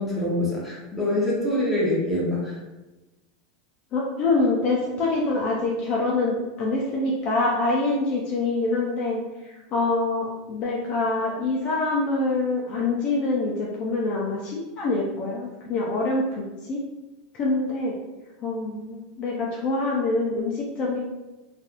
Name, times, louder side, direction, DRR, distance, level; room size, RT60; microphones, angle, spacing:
voice 1, 0.0-2.5, left 1 dB, 5° right, -8 dB, 0.9 m, -25 dB
voice 2, 3.9-9.2 9.5-16.8 17.3-17.9 18.4-21.0, left 2 dB, 30° left, -3 dB, 0.4 m, -25 dB
3.4 x 2.4 x 2.5 m, 1.1 s
supercardioid pair, 160°, 4 cm